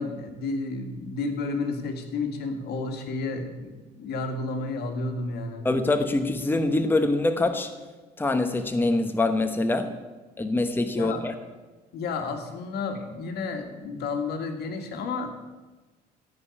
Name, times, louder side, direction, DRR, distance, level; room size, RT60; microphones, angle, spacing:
voice 1, 0.0-5.7 10.9-11.2 11.9-15.4, left 3 dB, 75° left, 5 dB, 1.9 m, -31 dB
voice 2, 5.6-7.7 8.2-9.9 10.4-11.3, left 2 dB, 10° left, 7 dB, 1.0 m, -24 dB
15.0 x 5.4 x 9.6 m, 1.2 s
cardioid pair, 110°, 17 cm